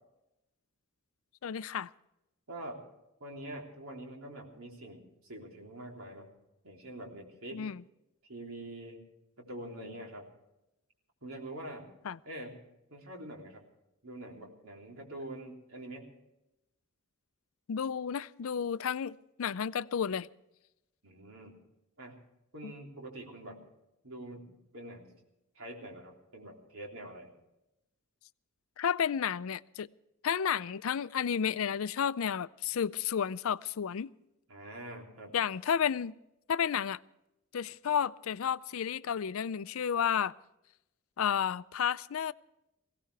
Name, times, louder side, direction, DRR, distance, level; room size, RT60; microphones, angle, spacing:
voice 1, 1.4-1.9 7.5-7.8 12.0-12.2 17.7-20.3 22.6-22.7 28.8-29.9 30.2-34.1 35.3-36.1 36.5-37.0 37.5-40.3 41.2-42.3, left 8 dB, 70° left, 0.4 m, -32 dB
voice 2, 2.5-2.8 3.2-6.4 6.6-7.7 8.3-9.0 9.4-10.3 11.2-11.9 12.2-12.6 12.9-13.6 14.0-16.1 21.0-21.6 22.0-22.2 22.5-23.6 24.0-25.1 25.6-27.3 34.5-35.3, right 1 dB, 75° right, 3.4 m, -45 dB
21.0 x 17.0 x 3.4 m
head